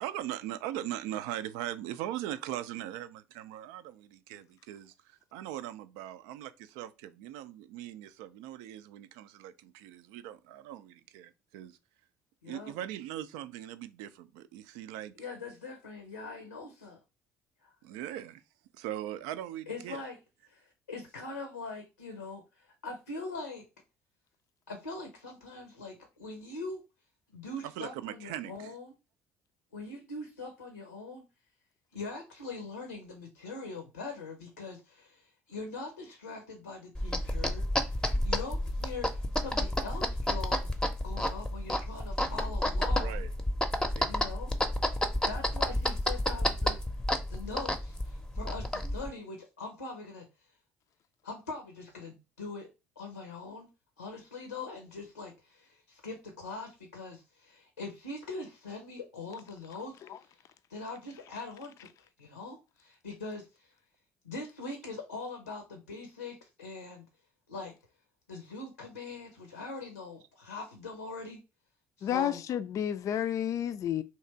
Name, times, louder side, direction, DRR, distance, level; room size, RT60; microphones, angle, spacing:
voice 1, 0.0-11.8 12.5-15.1 17.8-18.4 18.7-20.0 27.6-28.7 43.0-43.3 43.9-44.1, right 12 dB, 60° right, 0.4 m, -40 dB
voice 2, 12.4-12.7 15.2-17.0 17.6-17.7 19.7-20.2 20.5-23.7 24.7-26.8 27.3-28.9 29.7-31.2 31.9-43.3 44.0-44.5 45.2-46.8 47.3-50.3 51.2-52.7 53.0-53.7 54.0-63.7 64.2-67.0 67.5-67.7 68.3-71.4 72.0-72.4, left 3 dB, 85° left, 0.6 m, -42 dB
sound 1, 36.9-49.1, left 1 dB, 10° left, 0.7 m, -30 dB
voice 3, 72.0-74.0, left 10 dB, 40° left, 0.3 m, -30 dB
3.2 x 2.8 x 4.4 m
figure-of-eight pair, 55°, 8 cm